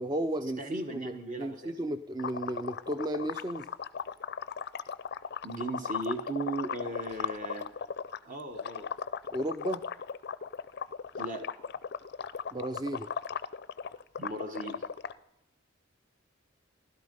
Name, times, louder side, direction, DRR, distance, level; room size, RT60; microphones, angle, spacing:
voice 1, 0.0-3.7 9.3-9.8 12.5-13.1, right 1 dB, 20° right, 11 dB, 0.4 m, -34 dB
voice 2, 0.6-1.8 5.4-7.7 8.2-8.9 11.2-11.5 14.2-14.8, right 2 dB, 45° right, 5 dB, 1.2 m, -37 dB
sound 1, 2.2-8.2 8.5-15.1, left 6 dB, 55° left, 0.4 m, -37 dB
16.0 x 12.0 x 5.3 m, 0.90 s
head